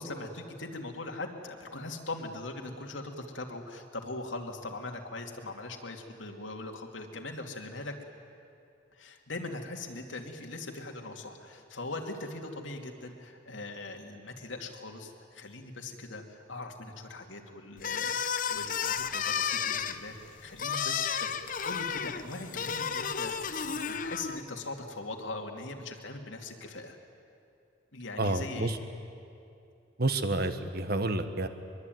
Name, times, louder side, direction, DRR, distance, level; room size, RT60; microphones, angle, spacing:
voice 1, 0.0-7.9 8.9-21.3 21.6-23.4 23.7-27.0 27.9-28.8, left 2 dB, 90° left, 3 dB, 2.7 m, -41 dB
sound 1, 17.8-24.4, left 7 dB, 45° left, 0.9 m, -32 dB
voice 2, 28.2-28.8 30.0-31.5, right 2 dB, 55° right, 9 dB, 1.5 m, -29 dB
23.0 x 23.0 x 9.4 m, 2.6 s
head